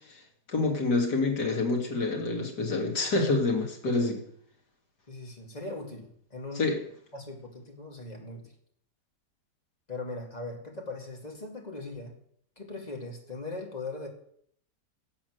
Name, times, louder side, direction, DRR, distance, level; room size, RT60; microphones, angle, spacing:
voice 1, 0.5-4.2 6.6-6.8, left 3 dB, 70° left, 1 dB, 2.8 m, -27 dB
voice 2, 5.1-6.7 7.1-8.4 9.9-12.2 12.6-14.1, left 2 dB, 25° left, 1 dB, 2.3 m, -39 dB
11.5 x 7.4 x 7.9 m, 0.66 s
omnidirectional pair, 1.8 m